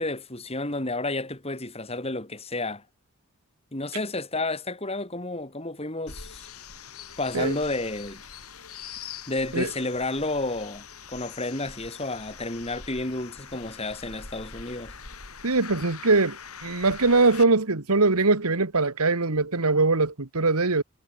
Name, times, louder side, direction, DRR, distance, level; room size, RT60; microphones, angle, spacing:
voice 1, 0.0-2.8 3.7-6.5 7.2-8.2 9.3-14.9, left 2 dB, 25° left, 3.6 m, -31 dB
sound 1, 6.1-17.4, left 6 dB, 80° left, 6.6 m, -43 dB
voice 2, 15.4-20.8, right 3 dB, 85° right, 1.8 m, -22 dB
head